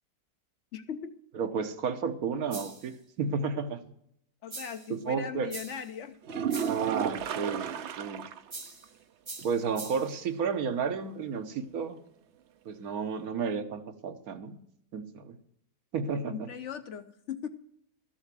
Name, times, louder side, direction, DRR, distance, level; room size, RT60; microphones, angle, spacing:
voice 1, 0.7-1.2 4.4-6.4 16.2-17.5, left 8 dB, 60° left, 10 dB, 0.9 m, -39 dB
voice 2, 1.3-3.8 4.9-5.5 6.6-8.3 9.4-12.0 12.6-14.6 14.9-15.4 15.9-16.5, right 5 dB, 75° right, 8 dB, 1.4 m, -32 dB
sound 1, 2.5-2.9 4.5-4.9 5.5-5.9 6.5-6.9 8.5-8.9 9.2-10.2, right 3 dB, 25° right, 0.7 m, -43 dB
sound 2, 6.2-8.5 8.8-8.9 9.4-9.5 13.2-13.3, right 8 dB, 60° right, 0.8 m, -33 dB
13.0 x 7.2 x 7.4 m, 0.71 s
omnidirectional pair, 1.6 m